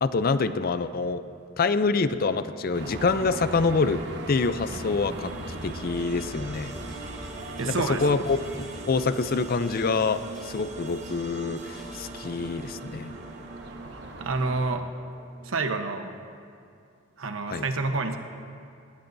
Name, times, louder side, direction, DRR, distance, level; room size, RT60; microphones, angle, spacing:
voice 1, 0.0-1.2 1.6-5.3 5.6-6.8 7.6-8.4 8.9-13.1 17.5-17.6, left 4 dB, 45° left, 12 dB, 0.5 m, -26 dB
sound 1, 2.7-14.8, right 1 dB, 55° right, 1.2 m, -40 dB
sound 2, 4.9-15.9, right 3 dB, 35° right, 0.9 m, -43 dB
sound 3, 6.5-12.1, equal, 5° left, 2.4 m, -53 dB
voice 2, 7.6-8.0 14.2-14.8 15.4-16.1 17.2-18.2, right 3 dB, 80° right, 6 dB, 1.0 m, -28 dB
20.0 x 19.0 x 2.7 m, 2.4 s
head